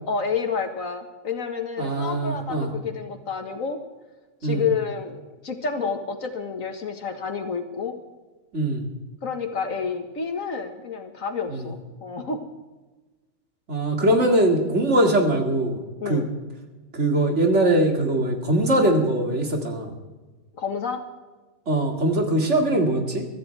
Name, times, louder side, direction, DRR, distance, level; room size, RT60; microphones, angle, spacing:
voice 1, 0.1-3.8 4.4-8.0 9.2-12.4 16.0-16.3 20.6-21.0, left 5 dB, 70° left, 6 dB, 2.0 m, -29 dB
voice 2, 1.8-2.7 4.4-4.6 8.5-8.8 11.5-11.7 13.7-15.8 16.1-16.2 16.9-19.9 21.7-23.3, right 1 dB, 55° right, 2 dB, 2.6 m, -21 dB
24.0 x 14.0 x 3.4 m, 1.2 s
omnidirectional pair, 1.5 m